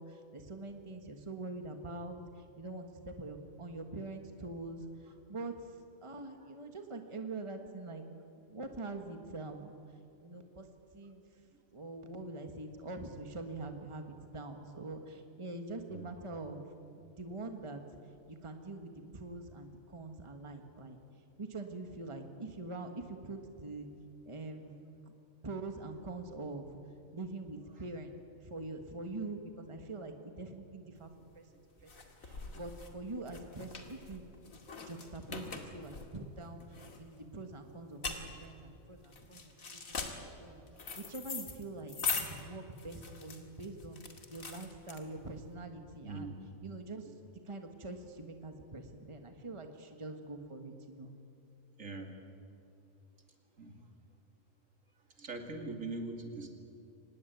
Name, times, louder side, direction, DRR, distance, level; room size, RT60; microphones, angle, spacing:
voice 1, 0.0-8.0 8.5-10.7 10.9-11.2 11.7-16.6 17.0-17.8 18.3-21.0 21.4-23.9 24.2-25.1 25.4-26.8 27.1-28.1 28.4-31.5 31.8-31.9 32.2-34.2 34.5-40.6 41.0-47.1 47.4-51.1, right 2 dB, 20° right, 6 dB, 1.6 m, -44 dB
sound 1, 31.1-45.4, left 4 dB, 75° left, 2.7 m, -42 dB
voice 2, 46.0-46.4 51.8-52.2 53.6-53.8 55.2-56.5, right 3 dB, 70° right, 4 dB, 2.9 m, -42 dB
25.0 x 19.5 x 9.3 m, 2.7 s
omnidirectional pair, 1.4 m